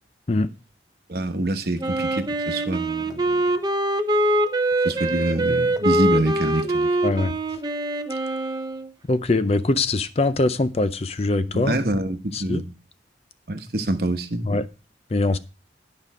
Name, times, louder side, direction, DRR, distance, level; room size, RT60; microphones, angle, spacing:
voice 1, 1.1-3.4 4.8-6.9 11.5-12.7 13.5-14.5, right 1 dB, 55° right, 1.0 m, -26 dB
Wind instrument woodwind instrument, 1.8-8.9, right 1 dB, 25° right, 0.6 m, -23 dB
voice 2, 9.1-11.7 12.5-12.6 14.5-14.6 15.1-15.4, left 2 dB, 35° left, 0.5 m, -22 dB
11.5 x 5.3 x 4.7 m
head